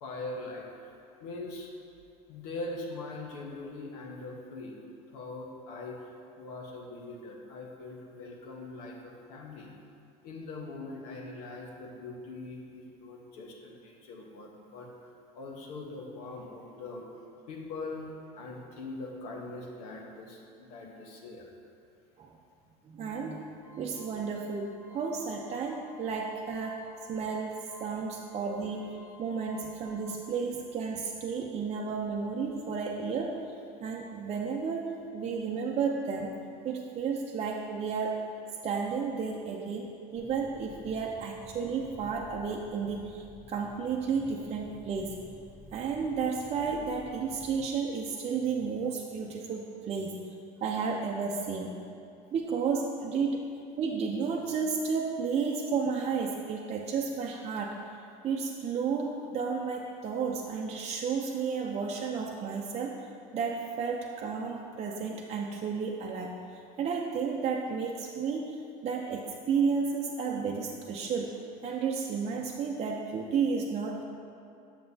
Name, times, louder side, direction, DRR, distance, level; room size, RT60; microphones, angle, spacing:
voice 1, 0.0-0.9 1.2-1.7 2.3-4.8 5.1-6.1 6.4-9.7 10.2-17.0 17.5-18.1 18.4-21.5 28.7-28.8, left 2 dB, 85° left, 0 dB, 1.1 m, -42 dB
voice 2, 22.9-26.8 27.1-33.4 33.8-36.4 36.6-38.2 38.6-45.1 45.7-50.2 50.6-51.8 52.3-53.5 53.8-57.8 58.2-68.6 68.8-71.4 71.6-74.0, right 5 dB, 35° right, -1 dB, 0.6 m, -32 dB
sound 1, 23.6-30.0, left 2 dB, 10° right, 1.2 m, -56 dB
sound 2, 40.1-47.7, left 1 dB, 10° left, 1.1 m, -52 dB
7.6 x 6.7 x 2.7 m, 2.5 s
supercardioid pair, 100°, 19 cm